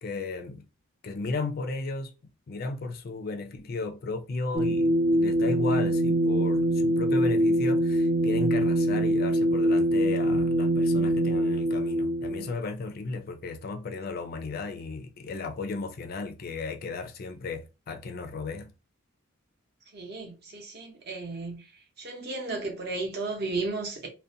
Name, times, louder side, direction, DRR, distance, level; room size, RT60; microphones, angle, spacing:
voice 1, 0.0-0.7 1.0-2.1 2.5-18.7, left 3 dB, 45° left, 0.3 m, -34 dB
sound 1, 4.5-12.5, right 1 dB, 30° right, 0.3 m, -24 dB
voice 2, 19.9-21.7 22.0-24.1, right 3 dB, 50° right, 0.7 m, -34 dB
2.5 x 2.1 x 2.6 m
head